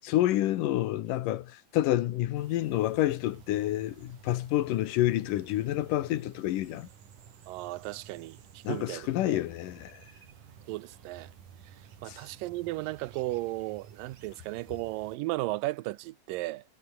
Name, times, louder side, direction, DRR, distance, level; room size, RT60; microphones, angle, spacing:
voice 1, 0.0-6.9 8.6-10.0 12.1-12.2, left 14 dB, 75° left, 2.6 m, -28 dB
sound 1, 2.3-15.2, right 8 dB, 70° right, 4.1 m, -53 dB
voice 2, 7.5-9.4 10.7-11.3 11.7-11.8 12.0-16.6, right 19 dB, 85° right, 2.4 m, -35 dB
omnidirectional pair, 3.9 m